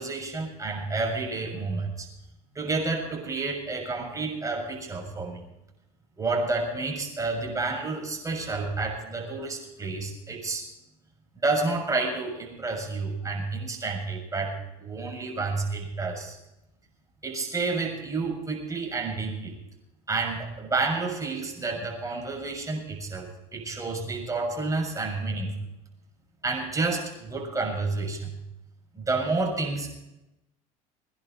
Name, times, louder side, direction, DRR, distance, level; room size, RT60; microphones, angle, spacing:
voice 1, 0.0-2.1 2.5-5.4 6.2-10.7 11.4-16.4 17.2-19.5 20.1-25.5 26.4-28.4 28.9-30.0, right 3 dB, 20° right, 1 dB, 6.8 m, -30 dB
22.0 x 11.0 x 4.4 m, 0.90 s
supercardioid pair, 85°, 18 cm